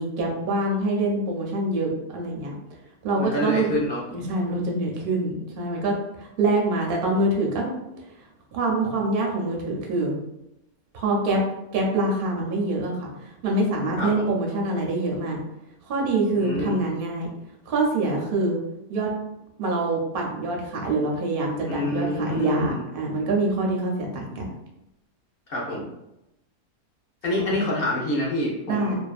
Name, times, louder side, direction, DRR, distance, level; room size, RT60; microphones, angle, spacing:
voice 1, 0.0-2.5 3.0-3.7 4.1-7.7 8.5-10.1 10.9-11.4 11.7-15.4 15.9-17.3 17.7-18.6 18.9-19.1 19.6-24.5 27.4-27.5 28.7-28.9, right 2 dB, 60° right, -1 dB, 0.6 m, -25 dB
voice 2, 3.2-4.0 14.0-14.3 16.4-16.8 21.6-22.8 25.5-25.9 27.2-28.9, left 1 dB, 55° left, -3 dB, 0.7 m, -27 dB
2.5 x 2.3 x 2.4 m, 0.87 s
omnidirectional pair, 1.6 m